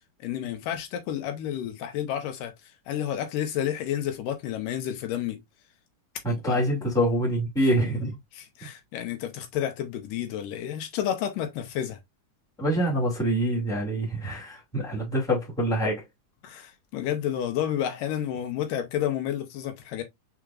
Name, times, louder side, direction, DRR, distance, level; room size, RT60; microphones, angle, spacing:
voice 1, 0.2-2.5 2.9-5.4 6.5-6.6 8.3-12.0 16.4-20.0, left 10 dB, 85° left, 2.6 m, -30 dB
voice 2, 6.2-8.2 12.6-16.0, right 1 dB, ahead, 1.7 m, -25 dB
4.9 x 4.4 x 2.4 m
omnidirectional pair, 3.7 m